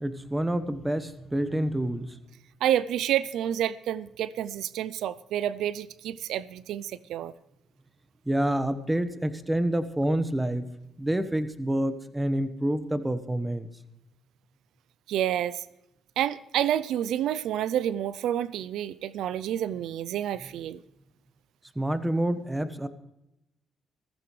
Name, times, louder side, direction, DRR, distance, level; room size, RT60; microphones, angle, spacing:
voice 1, 0.0-2.2 8.3-10.7 11.0-13.7 21.7-22.9, right 1 dB, 10° right, 1.2 m, -28 dB
voice 2, 2.6-7.3 15.1-15.6 16.2-20.8, right 11 dB, 80° right, 0.4 m, -29 dB
15.5 x 14.5 x 3.2 m
cardioid pair, 90°, 0 cm